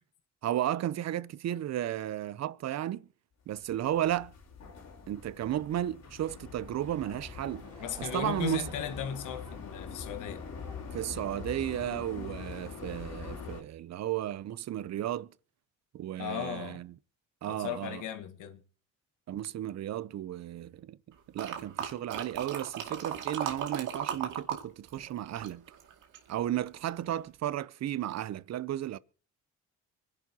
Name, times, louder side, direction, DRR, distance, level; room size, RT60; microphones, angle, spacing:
voice 1, 0.4-3.1 3.5-4.3 5.1-7.7 8.0-8.6 10.9-15.3 15.9-16.9 17.4-18.0 19.3-21.0 21.3-25.6 26.3-29.0, right 12 dB, 60° right, 0.7 m, -34 dB
sound 1, 3.6-13.6, left 5 dB, 60° left, 4.0 m, -44 dB
Laughter / Crowd, 7.3-11.9, right 1 dB, 15° right, 3.7 m, -53 dB
voice 2, 7.8-10.4 16.2-16.8 17.5-18.6, left 9 dB, 85° left, 1.6 m, -37 dB
sound 2, 21.4-24.6 24.9-26.3 26.9-27.0, right 8 dB, 85° right, 2.4 m, -36 dB
25.0 x 11.0 x 2.9 m
cardioid pair, 90°, 30 cm